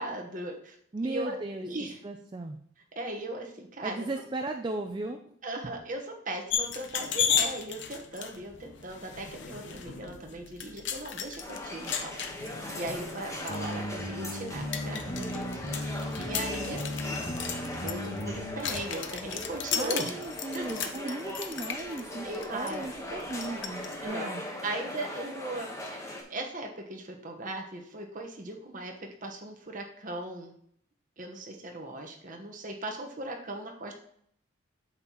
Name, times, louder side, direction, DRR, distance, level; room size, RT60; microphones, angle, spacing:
voice 1, 0.0-0.8 1.0-1.4 1.6-2.0 2.9-4.1 5.4-15.9 16.2-16.8 17.4-20.1 20.5-20.7 21.0-21.2 22.2-22.8 24.0-24.3 24.6-26.0 26.3-30.5 31.2-33.9, right 1 dB, 40° right, 2 dB, 1.2 m, -38 dB
voice 2, 0.9-1.7 2.0-2.6 3.8-5.3 19.7-24.4, right 2 dB, 20° right, 5 dB, 0.4 m, -36 dB
sound 1, 6.5-23.9, left 8 dB, 55° left, 0.8 m, -36 dB
sound 2, 11.4-26.2, left 1 dB, 15° left, 1.2 m, -39 dB
sound 3, 13.5-18.6, left 1 dB, 85° left, 2.7 m, -36 dB
8.7 x 7.3 x 3.0 m, 0.68 s
head